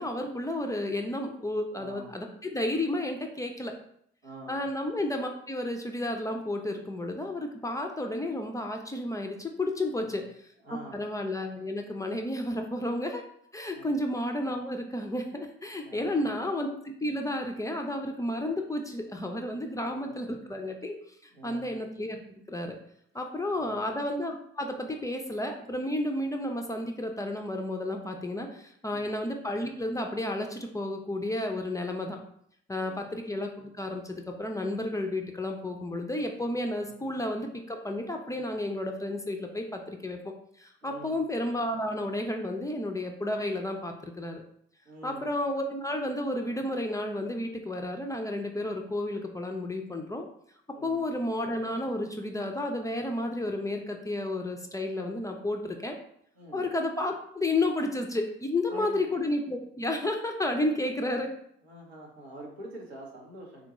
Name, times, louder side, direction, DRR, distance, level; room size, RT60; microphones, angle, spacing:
voice 1, 0.0-3.7 4.5-10.2 10.7-13.2 13.5-20.9 21.2-22.8 23.1-32.2 32.7-40.3 40.6-44.4 45.0-50.3 50.8-56.0 56.5-61.3, left 1 dB, 10° left, 3 dB, 0.4 m, -32 dB
voice 2, 1.7-2.2 4.2-4.6 10.1-10.2 10.6-11.0 13.7-13.9 15.8-16.4 19.5-20.1 21.3-21.8 23.5-23.9 28.9-29.1 32.8-33.0 40.8-41.2 44.9-45.3 50.7-51.0 56.4-56.6 58.7-59.0 61.6-63.7, right 1 dB, 85° right, -2 dB, 0.7 m, -45 dB
3.6 x 2.1 x 2.9 m, 0.68 s
figure-of-eight pair, 45°, 31 cm